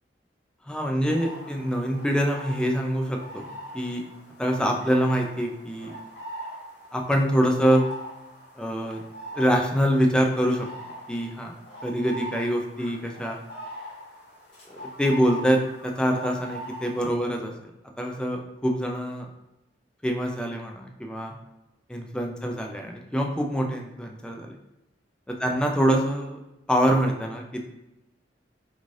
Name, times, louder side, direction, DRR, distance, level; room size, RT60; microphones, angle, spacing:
voice 1, 0.7-3.5 3.7-4.0 4.4-5.9 6.9-7.8 8.6-9.0 9.3-10.7 11.1-13.4 15.0-17.5 18.0-19.3 20.0-21.3 21.9-24.6 25.3-26.4 26.7-27.7, equal, 5° left, 1 dB, 0.3 m, -25 dB
sound 1, 1.1-17.0, equal, 75° left, 1.3 m, -41 dB
3.1 x 2.5 x 2.5 m, 0.93 s
head